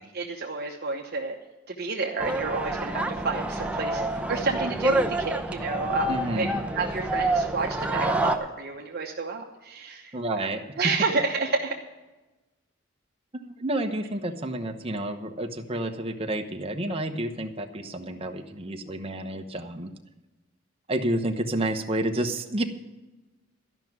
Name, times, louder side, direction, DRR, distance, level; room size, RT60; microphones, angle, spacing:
voice 1, 0.1-1.4 1.8-6.5 6.7-10.5 10.8-11.8, right 4 dB, 55° right, 0 dB, 1.0 m, -30 dB
sound 1, 2.2-8.4, right 2 dB, 5° right, 0.6 m, -27 dB
voice 2, 6.1-6.6 10.1-10.9 13.3-19.9 20.9-22.6, right 1 dB, 30° right, 4 dB, 0.9 m, -30 dB
13.0 x 6.0 x 9.4 m, 1.1 s
head